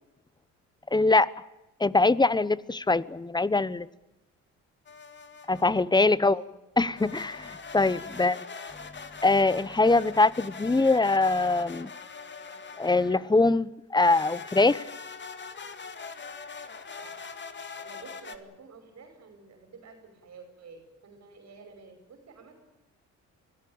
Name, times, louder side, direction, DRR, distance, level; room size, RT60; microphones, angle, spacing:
voice 1, 0.9-1.3 1.8-3.9 5.5-6.4 6.8-8.3 9.2-11.9 12.8-14.8, left 3 dB, 15° left, 0.9 m, -23 dB
sound 1, 4.9-5.9 7.0-13.4 14.0-18.4, left 5 dB, 35° left, 2.2 m, -42 dB
voice 2, 6.1-6.5 8.1-8.4 17.0-17.1 17.7-22.6, right 4 dB, 60° right, 5.3 m, -50 dB
24.0 x 17.0 x 8.8 m
cardioid pair, 90°, 30 cm